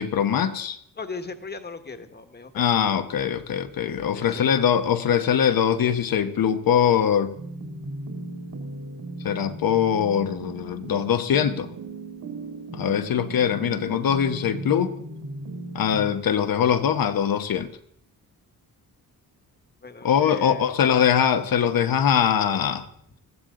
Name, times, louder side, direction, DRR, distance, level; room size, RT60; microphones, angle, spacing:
voice 1, 0.0-0.8 2.5-7.4 9.2-11.7 12.7-14.9 15.7-17.7 20.0-22.9, left 8 dB, 65° left, 1.3 m, -22 dB
voice 2, 1.0-2.7 4.1-4.8 19.8-20.7, left 4 dB, 25° left, 1.5 m, -38 dB
sound 1, 7.3-16.1, right 2 dB, 65° right, 2.9 m, -37 dB
21.0 x 15.0 x 3.8 m
wide cardioid pair, 130°, 37 cm